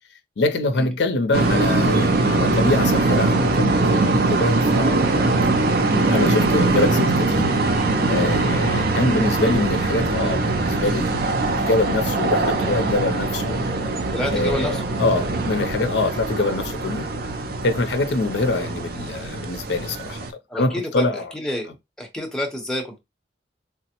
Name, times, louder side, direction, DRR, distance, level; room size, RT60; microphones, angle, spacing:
voice 1, 0.4-5.5 6.1-7.5 8.1-13.6 14.3-17.1 17.6-20.2 20.5-21.3, left 2 dB, 70° left, 0.5 m, -24 dB
sound 1, 1.3-20.3, right 2 dB, 55° right, 0.5 m, -21 dB
voice 2, 8.9-9.3 14.1-14.8 20.5-21.1 21.3-21.7 22.0-23.0, equal, 5° left, 0.8 m, -28 dB
3.4 x 2.0 x 2.8 m
head